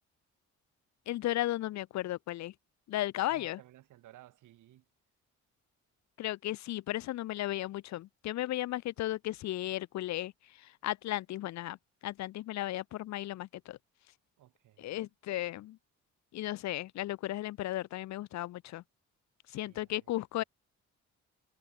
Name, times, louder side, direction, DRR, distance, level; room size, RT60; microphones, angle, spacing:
voice 1, 1.1-2.5 2.9-3.6 6.2-10.3 10.8-11.8 12.0-13.8 14.8-15.8 16.3-18.8 19.5-20.4, left 15 dB, 65° left, 0.5 m, -35 dB
voice 2, 3.2-4.9 14.4-15.1 19.6-20.5, right 14 dB, 85° right, 3.9 m, -58 dB
cardioid pair, 90°, 30 cm